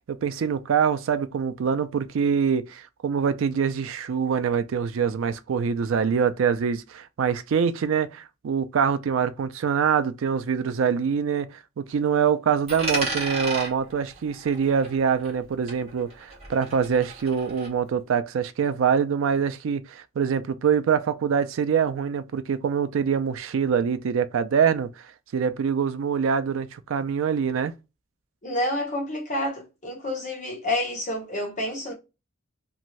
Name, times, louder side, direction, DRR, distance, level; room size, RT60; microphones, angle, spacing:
voice 1, 0.1-25.1 25.3-27.7, right 7 dB, 75° right, 0.3 m, -24 dB
Coin (dropping), 12.7-15.4 15.7-17.7, right 2 dB, 30° right, 1.2 m, -33 dB
voice 2, 28.4-31.9, left 1 dB, 35° left, 0.9 m, -29 dB
2.6 x 2.4 x 3.1 m
head